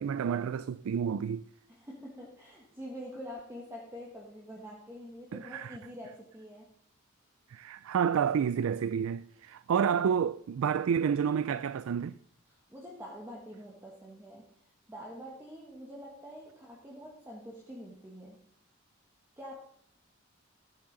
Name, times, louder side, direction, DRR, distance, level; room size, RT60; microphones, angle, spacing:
voice 1, 0.0-1.4 5.3-5.8 7.5-12.2, right 7 dB, 75° right, 0.3 m, -29 dB
voice 2, 1.7-6.7 12.7-14.5 14.9-18.4 19.4-19.6, equal, 10° right, 1.3 m, -46 dB
13.5 x 8.9 x 3.8 m
head